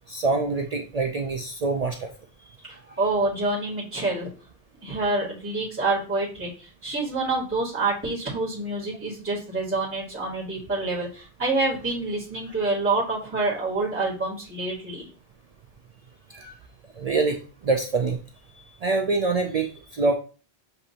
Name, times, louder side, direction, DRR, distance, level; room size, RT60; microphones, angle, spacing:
voice 1, 0.1-2.1 16.3-16.5 17.0-18.2 18.8-20.1, right 3 dB, 60° right, 3 dB, 0.4 m, -25 dB
voice 2, 2.7-4.3 4.8-15.1, right 2 dB, 10° right, -6 dB, 1.5 m, -27 dB
6.7 x 2.6 x 2.8 m, 0.36 s
omnidirectional pair, 1.1 m